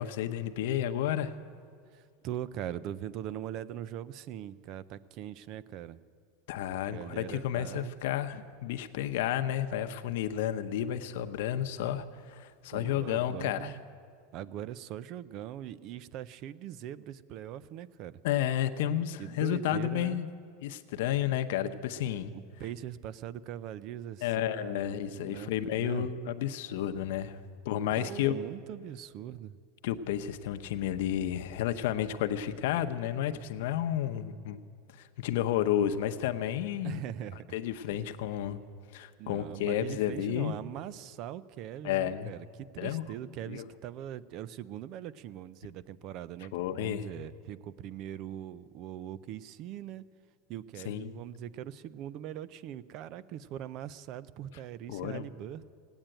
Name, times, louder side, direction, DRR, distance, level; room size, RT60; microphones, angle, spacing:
voice 1, 0.0-1.3 6.5-13.7 18.2-20.3 20.6-22.3 24.2-27.4 27.6-28.4 29.8-34.6 35.0-37.0 37.5-38.6 38.9-40.5 41.8-42.3 42.8-43.0 43.5-43.7 46.5-47.1 50.8-51.2 54.9-55.3, left 11 dB, 70° left, 9 dB, 0.8 m, -31 dB
voice 2, 1.9-6.0 6.9-8.0 12.7-13.8 14.3-18.2 19.2-20.2 22.3-26.1 28.0-29.6 36.8-37.6 37.9-38.1 39.2-50.1 50.5-55.7, right 11 dB, 40° right, 18 dB, 0.4 m, -41 dB
17.5 x 8.9 x 9.0 m, 2.1 s
supercardioid pair, 155°, 0 cm